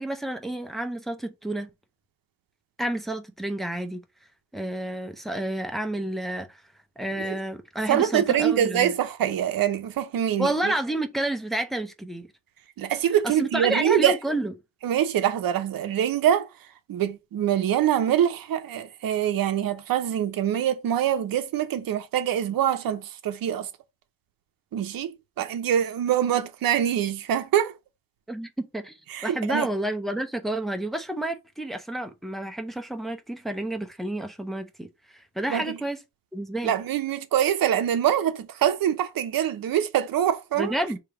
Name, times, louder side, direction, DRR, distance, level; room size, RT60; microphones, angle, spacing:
voice 1, 0.0-1.7 2.8-4.0 4.5-6.6 7.0-8.9 10.4-12.3 13.2-14.5 28.3-29.0 29.2-36.0 36.3-36.7 40.6-41.0, right 1 dB, ahead, 0.5 m, -30 dB
voice 2, 7.9-10.7 12.8-14.2 14.8-16.5 16.9-23.7 24.7-27.7 29.1-29.7 35.5-35.8 36.6-40.7, right 10 dB, 55° right, 0.7 m, -24 dB
3.3 x 2.9 x 4.7 m
cardioid pair, 140°, 41 cm